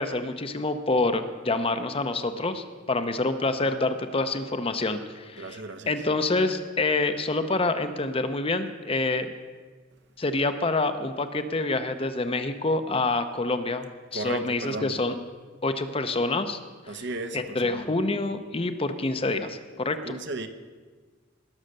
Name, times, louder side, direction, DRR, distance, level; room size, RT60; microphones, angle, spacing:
voice 1, 0.0-5.6 5.9-9.3 10.2-13.9 14.1-15.1 15.6-16.6 16.9-17.0 17.3-20.2, left 2 dB, 30° left, 9 dB, 0.7 m, -27 dB
voice 2, 5.4-5.9 14.1-14.9 16.9-17.9 20.0-20.5, right 2 dB, 60° right, 9 dB, 0.9 m, -35 dB
19.0 x 6.5 x 6.6 m, 1.5 s
head